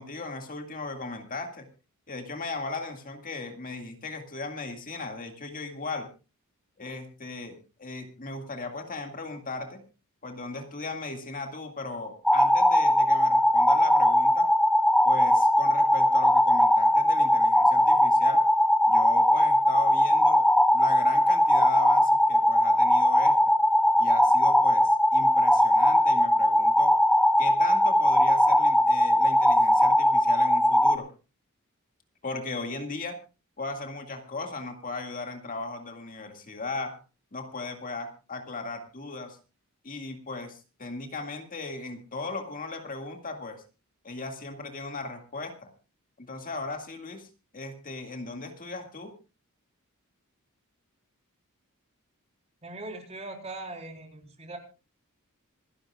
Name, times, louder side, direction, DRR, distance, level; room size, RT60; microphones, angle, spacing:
voice 1, 0.0-1.7 2.1-6.1 6.8-9.8 10.2-14.5 15.0-18.4 18.9-20.5 20.7-23.6 24.0-27.0 27.4-31.1 32.2-33.2 33.6-37.0 37.3-39.4 39.8-43.6 44.0-45.7 46.2-47.3 47.5-49.1, left 3 dB, 40° left, 4 dB, 2.1 m, -37 dB
sound 1, 12.2-31.0, left 1 dB, ahead, 0.8 m, -20 dB
voice 2, 52.6-54.6, right 2 dB, 30° right, 2 dB, 4.0 m, -40 dB
26.5 x 11.5 x 2.4 m, 0.32 s
head